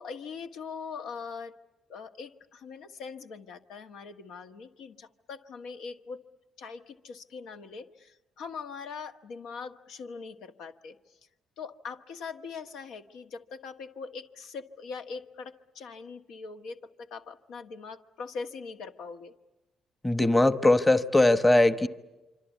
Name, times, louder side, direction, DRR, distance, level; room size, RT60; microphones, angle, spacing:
voice 1, 0.0-1.5 1.9-6.2 6.6-10.9 11.6-19.3, left 5 dB, 85° left, 1.5 m, -42 dB
voice 2, 20.0-21.9, left 2 dB, 15° left, 1.1 m, -21 dB
26.0 x 25.5 x 8.3 m
cardioid pair, 90°, 0 cm